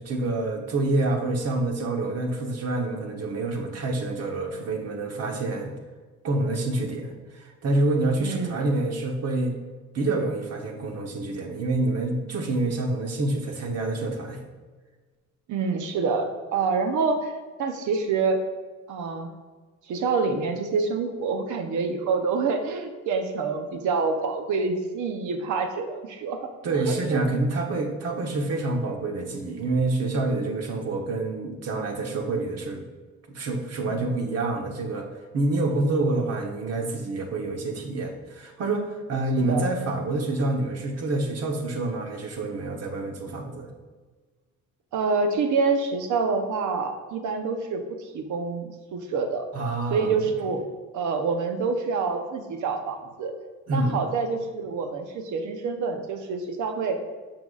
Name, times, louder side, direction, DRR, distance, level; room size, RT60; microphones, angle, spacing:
voice 1, 0.0-5.7 6.2-9.5 9.9-14.4 26.6-32.8 33.3-35.1 35.3-43.7 49.5-50.2 53.7-54.0, right 2 dB, 55° right, 3 dB, 1.1 m, -27 dB
voice 2, 8.2-8.7 15.5-18.4 18.9-19.3 19.9-26.4 26.7-27.4 33.8-34.1 39.4-39.7 44.9-49.5 49.9-50.6 50.9-53.3 53.7-57.0, right 4 dB, 75° right, 6 dB, 0.9 m, -27 dB
6.8 x 6.0 x 2.5 m, 1.4 s
cardioid pair, 90°, 30 cm